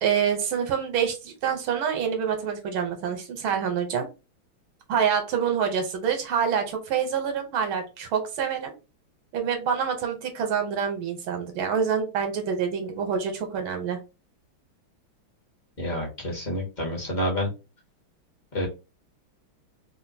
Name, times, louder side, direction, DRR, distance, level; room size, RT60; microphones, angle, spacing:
voice 1, 0.0-4.1 4.9-8.7 9.3-14.0, right 7 dB, 75° right, 5 dB, 1.6 m, -26 dB
voice 2, 15.8-17.5 18.5-18.7, equal, 30° left, -2 dB, 1.0 m, -28 dB
3.7 x 2.5 x 2.7 m, 0.28 s
omnidirectional pair, 2.4 m